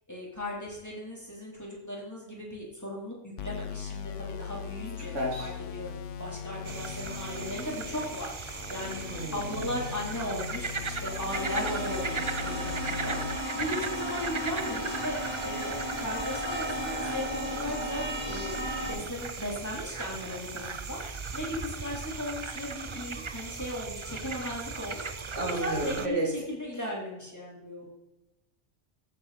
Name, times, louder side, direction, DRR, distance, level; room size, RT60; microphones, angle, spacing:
voice 1, 0.1-9.0 9.3-15.2 15.4-27.9, left 1 dB, 15° left, -4 dB, 3.8 m, -37 dB
sound 1, 3.4-13.4, left 8 dB, 75° left, 0.9 m, -40 dB
voice 2, 5.0-5.5 9.1-9.5 25.3-26.3, right 2 dB, 75° right, -1 dB, 3.4 m, -31 dB
sound 2, 6.6-26.1, right 5 dB, 30° right, 0.6 m, -38 dB
sound 3, 11.3-18.9, equal, 30° left, 5.5 m, -35 dB
14.5 x 8.0 x 4.3 m, 0.96 s
omnidirectional pair, 1.3 m